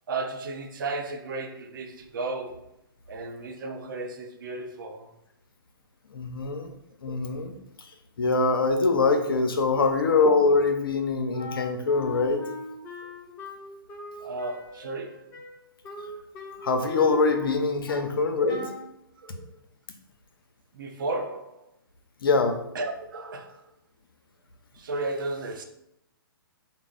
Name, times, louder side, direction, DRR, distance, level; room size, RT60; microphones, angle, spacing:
voice 1, 0.1-2.7 3.1-5.1 11.3-11.5 13.0-13.1 14.2-15.3 17.9-18.0 19.2-19.6 20.7-21.6 22.7-23.7 24.7-25.6, right 3 dB, 60° right, 0.5 m, -34 dB
voice 2, 6.1-6.7 7.0-7.5 7.8-7.9 8.2-12.4 16.6-18.7 22.2-22.6, left 3 dB, 70° left, 0.6 m, -23 dB
Wind instrument woodwind instrument, 11.4-18.2 18.5-18.9, left 3 dB, 20° left, 0.5 m, -41 dB
3.9 x 2.0 x 3.8 m
figure-of-eight pair, 130°, 12 cm